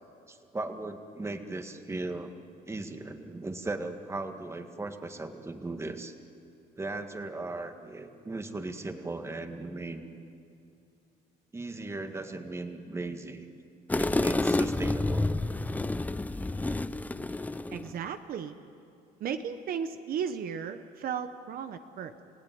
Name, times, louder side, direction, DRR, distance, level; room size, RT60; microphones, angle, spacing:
voice 1, 0.3-2.3 2.7-6.1 6.8-10.0 11.5-13.5 14.0-15.3, right 2 dB, 15° right, 6 dB, 1.8 m, -37 dB
sound 1, 13.9-18.0, left 2 dB, 10° left, 0.6 m, -29 dB
voice 2, 17.7-18.6 19.2-22.2, right 7 dB, 60° right, 8 dB, 1.1 m, -35 dB
29.5 x 17.0 x 9.4 m, 2.5 s
cardioid pair, 110°, 17 cm